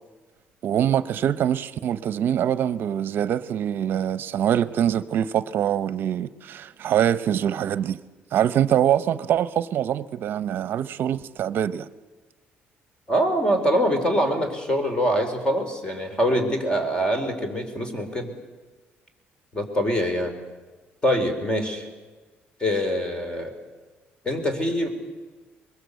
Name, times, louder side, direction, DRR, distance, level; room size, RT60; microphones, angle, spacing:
voice 1, 0.6-8.0 8.3-11.9, right 10 dB, 60° right, 0.7 m, -24 dB
voice 2, 13.1-18.3 19.5-20.3 21.0-21.9 22.6-23.5 24.2-24.9, equal, 25° left, 4.2 m, -24 dB
22.5 x 21.0 x 8.2 m
cardioid pair, 105°, 4 cm